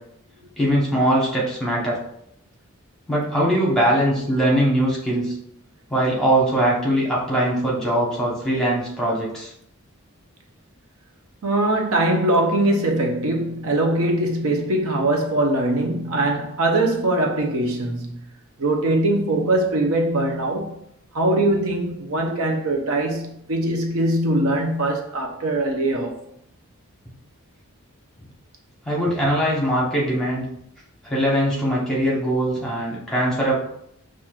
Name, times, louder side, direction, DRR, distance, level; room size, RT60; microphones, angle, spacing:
voice 1, 0.6-2.0 3.1-5.4 5.9-9.5 28.8-30.4 31.0-33.5, right 1 dB, 5° left, 0.9 m, -21 dB
voice 2, 11.4-18.2 18.6-20.8 21.1-26.2, right 1 dB, 80° right, 0.6 m, -22 dB
5.8 x 2.5 x 2.4 m
head